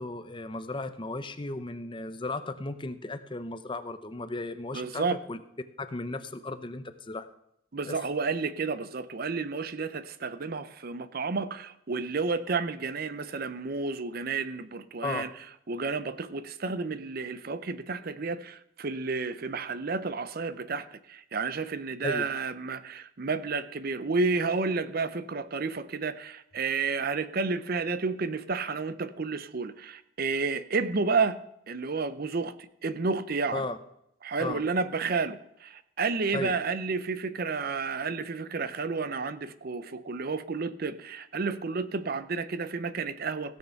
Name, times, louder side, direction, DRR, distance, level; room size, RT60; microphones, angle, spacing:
voice 1, 0.0-5.4 5.8-7.2 7.9-8.0 15.0-15.3 22.0-22.3 33.5-33.8 34.4-34.6 36.3-36.5, left 2 dB, 25° left, 0.6 m, -35 dB
voice 2, 4.7-5.2 7.7-15.3 15.7-31.4 31.7-33.6 34.2-43.6, right 4 dB, 45° right, 0.6 m, -31 dB
16.5 x 6.5 x 5.7 m
head